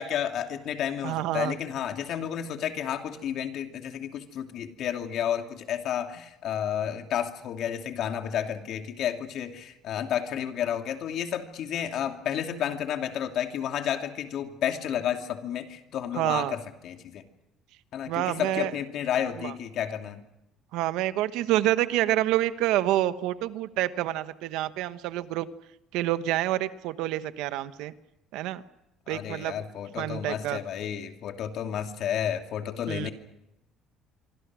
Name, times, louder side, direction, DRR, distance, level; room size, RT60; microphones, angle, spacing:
voice 1, 0.0-17.2 17.9-20.2 29.1-33.1, left 9 dB, 60° left, 5 dB, 2.7 m, -31 dB
voice 2, 1.0-1.6 16.1-16.6 18.1-18.7 19.4-19.5 20.7-25.5 25.9-27.9 28.3-28.6 29.1-29.6 30.0-30.6 32.9-33.1, right 14 dB, 80° right, 12 dB, 1.2 m, -27 dB
25.5 x 25.0 x 6.3 m, 0.87 s
cardioid pair, 130°, 0 cm